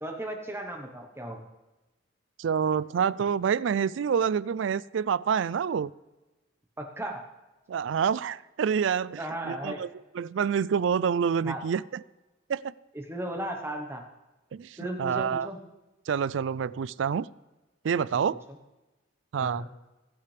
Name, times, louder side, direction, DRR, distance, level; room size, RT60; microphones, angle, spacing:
voice 1, 0.0-1.4 6.8-7.2 9.2-9.8 11.4-11.6 12.9-14.0 14.8-15.6 18.1-18.2 19.4-19.7, right 1 dB, 15° right, 3 dB, 1.1 m, -35 dB
voice 2, 2.4-5.9 7.7-9.9 10.1-12.0 12.5-12.7 14.5-15.5 16.1-17.3 17.8-18.4 19.3-19.7, right 7 dB, 75° right, 20 dB, 0.3 m, -27 dB
20.0 x 8.9 x 3.4 m, 1.1 s
head